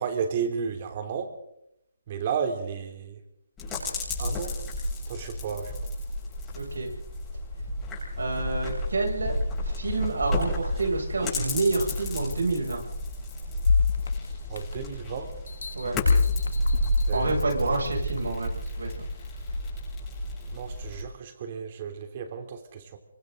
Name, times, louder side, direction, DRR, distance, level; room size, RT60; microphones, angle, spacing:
voice 1, 0.0-1.3 2.1-3.2 4.2-4.5 5.1-5.7 14.5-15.3 17.1-17.6 20.5-23.0, right 6 dB, 35° right, 6 dB, 3.1 m, -33 dB
sound 1, 3.6-21.0, left 1 dB, 10° left, 7.8 m, -32 dB
voice 2, 6.5-6.9 8.2-9.3 9.6-12.8 15.7-16.0 17.1-18.5 18.8-18.9, right 3 dB, 85° right, 1 dB, 7.2 m, -28 dB
sound 2, 13.7-15.0 15.5-17.6 18.2-18.3, left 5 dB, 75° left, 1.8 m, -25 dB
26.5 x 25.0 x 4.0 m, 0.79 s
hypercardioid pair, 165°, 0 cm